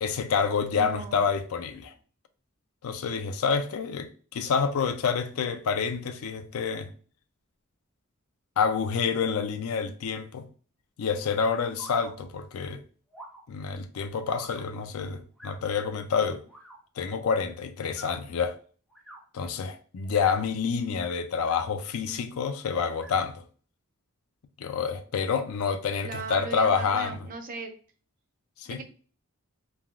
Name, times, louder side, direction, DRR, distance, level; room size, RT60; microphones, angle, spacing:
voice 1, 0.0-1.9 2.8-6.9 8.6-10.4 11.0-12.8 13.5-16.4 17.0-18.6 19.3-23.4 24.6-27.2 28.6-28.8, left 6 dB, 70° left, 0.4 m, -28 dB
voice 2, 0.7-1.3 26.0-27.7 28.7-28.8, right 4 dB, 40° right, 0.5 m, -38 dB
sound 1, 11.5-12.1 13.1-13.4 14.3-14.6 15.4-15.6 16.5-16.8 17.8-18.2 18.9-19.2 20.0-20.5 21.3-21.7 22.9-23.2, right 1 dB, 5° left, 1.0 m, -45 dB
3.3 x 2.3 x 2.3 m
head